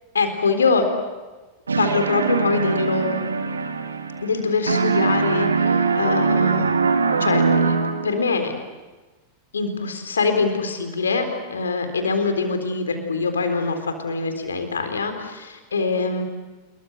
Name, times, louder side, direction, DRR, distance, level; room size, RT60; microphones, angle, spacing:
voice 1, 0.1-0.8 1.8-3.2 4.2-6.8 7.2-7.7 8.0-8.5 9.5-16.2, left 4 dB, 70° left, 6 dB, 3.8 m, -23 dB
sound 1, 1.7-4.4 4.7-8.3, right 5 dB, 75° right, 1.9 m, -22 dB
27.5 x 23.0 x 8.0 m, 1.2 s
figure-of-eight pair, 90°, 0 cm